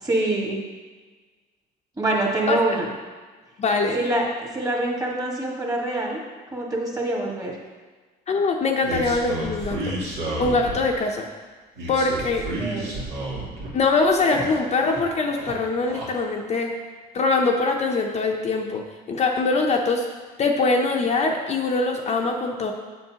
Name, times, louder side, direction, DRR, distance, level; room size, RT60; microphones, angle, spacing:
voice 1, 0.0-0.6 2.0-2.9 3.9-4.3 4.5-6.2 6.5-7.6 12.6-13.0, right 2 dB, 20° right, -2 dB, 1.7 m, -25 dB
voice 2, 3.6-4.0 8.3-10.0 10.4-11.3 11.9-12.5 13.7-16.8 17.1-20.1 20.4-22.7, left 3 dB, 40° left, 1 dB, 0.7 m, -23 dB
sound 1, 8.8-11.0 11.8-13.7 14.1-15.0 15.3-16.1, right 1 dB, 85° right, 2.3 m, -31 dB
8.0 x 6.5 x 2.9 m, 1.4 s
cardioid pair, 110°, 17 cm